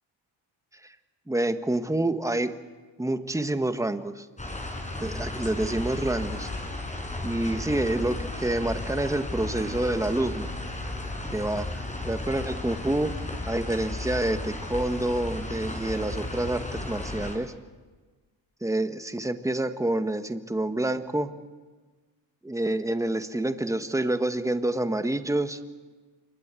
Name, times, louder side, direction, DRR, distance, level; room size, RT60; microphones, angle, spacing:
voice 1, 1.3-2.5 3.0-4.2 5.0-6.5 7.2-10.5 11.3-13.1 13.5-17.5 18.6-21.3 22.4-25.6, right 1 dB, 5° right, 9 dB, 1.7 m, -28 dB
sound 1, 4.4-17.4, left 2 dB, 15° left, 6.0 m, -34 dB
27.5 x 24.5 x 8.6 m, 1.3 s
cardioid pair, 110°, 46 cm